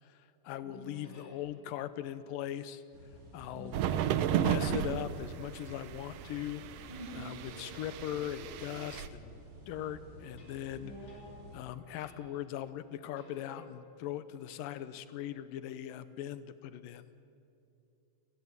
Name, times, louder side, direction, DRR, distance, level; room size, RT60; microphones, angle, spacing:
voice 1, 0.0-2.8 3.3-3.8 4.3-6.8 7.1-10.9 11.5-17.1, left 11 dB, 80° left, 14 dB, 2.4 m, -40 dB
voice 2, 0.6-1.3 3.5-4.1 6.9-7.3 10.7-11.4, right 2 dB, 35° left, -5 dB, 7.3 m, -48 dB
sound 1, 1.0-2.0 7.0-9.4 10.4-11.6 12.0-12.5 12.8-15.1, left 1 dB, 55° left, 4.5 m, -57 dB
sound 2, 2.9-11.6, right 1 dB, 55° right, 5.6 m, -52 dB
sound 3, 3.7-9.1, right 10 dB, 85° right, 1.4 m, -34 dB
28.5 x 15.5 x 9.6 m, 2.6 s
omnidirectional pair, 4.2 m